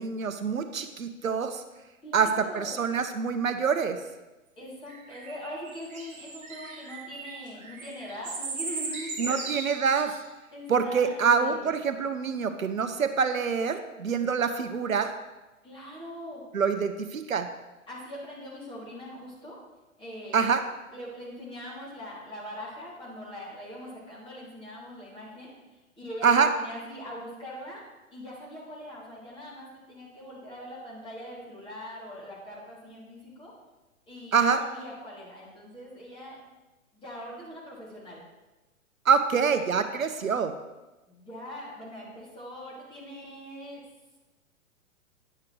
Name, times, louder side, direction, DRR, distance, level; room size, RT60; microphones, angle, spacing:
voice 1, 0.0-1.6 2.1-4.0 9.2-10.1 10.7-15.1 16.5-17.5 20.3-20.6 26.2-26.5 34.3-34.6 39.1-40.5, right 6 dB, 75° right, 9 dB, 0.7 m, -25 dB
voice 2, 2.0-2.8 4.6-9.3 10.5-11.7 15.6-16.4 17.9-19.6 20.0-20.5 20.9-25.5 26.0-27.8 28.1-33.5 34.1-36.4 36.9-38.2 41.1-43.8, equal, 10° left, -6 dB, 2.9 m, -42 dB
sound 1, 4.9-10.2, right 3 dB, 15° right, 1.0 m, -38 dB
9.9 x 7.5 x 3.2 m, 1.1 s
figure-of-eight pair, 110°, 41 cm